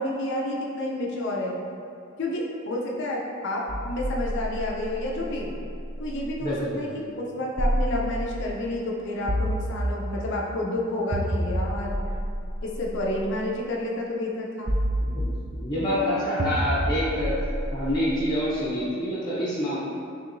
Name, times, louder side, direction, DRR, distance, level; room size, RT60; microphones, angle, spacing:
voice 1, 0.0-1.6 2.2-5.6 6.0-12.0 12.6-14.7 15.8-16.6, left 1 dB, 60° left, -2 dB, 0.5 m, -30 dB
sound 1, 3.7-6.5 7.6-8.6 9.3-10.4 11.1-13.4 14.7-15.8 16.4-18.6, equal, 25° right, 0.3 m, -29 dB
voice 2, 6.4-6.8 15.0-17.3 17.7-19.8, equal, 20° left, -8 dB, 0.7 m, -27 dB
4.6 x 3.1 x 2.5 m, 2.4 s
head